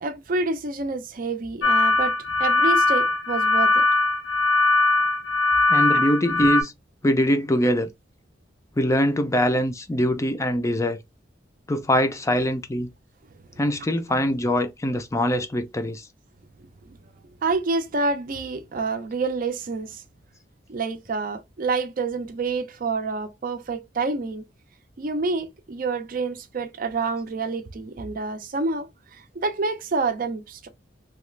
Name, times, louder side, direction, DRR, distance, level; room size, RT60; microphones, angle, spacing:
voice 1, 0.0-3.8 5.9-6.0 16.8-17.0 17.4-20.0 20.7-24.5 25.0-30.7, right 3 dB, 50° right, 0.5 m, -28 dB
sound 1, 1.6-6.6, left 3 dB, 85° left, 0.8 m, -20 dB
voice 2, 5.7-6.7 7.0-7.9 8.8-11.0 11.7-12.9 13.6-16.1, equal, 15° left, 0.4 m, -23 dB
2.9 x 2.3 x 3.2 m
head